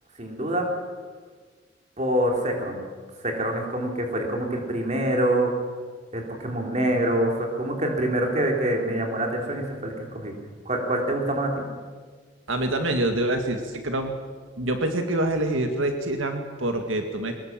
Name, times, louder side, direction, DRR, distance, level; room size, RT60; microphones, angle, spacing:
voice 1, 0.2-0.7 2.0-2.8 3.2-5.5 6.1-10.3 10.7-11.6, right 1 dB, 35° right, 2 dB, 3.8 m, -25 dB
voice 2, 12.5-14.2 14.6-17.3, right 1 dB, 80° right, 5 dB, 1.9 m, -26 dB
22.0 x 20.0 x 7.5 m, 1.5 s
head